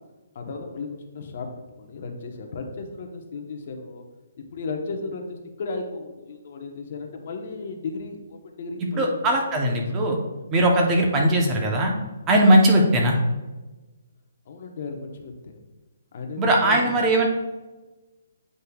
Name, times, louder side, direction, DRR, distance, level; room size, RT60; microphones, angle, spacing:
voice 1, 0.3-1.5 1.8-4.0 4.5-9.4 14.5-15.6 16.1-16.9, left 4 dB, 45° left, 3 dB, 0.9 m, -35 dB
voice 2, 9.0-10.2 10.5-11.9 12.3-13.2 16.4-17.3, right 1 dB, 15° right, 1 dB, 0.7 m, -19 dB
8.5 x 5.2 x 2.3 m, 1.1 s
hypercardioid pair, 170°, 0 cm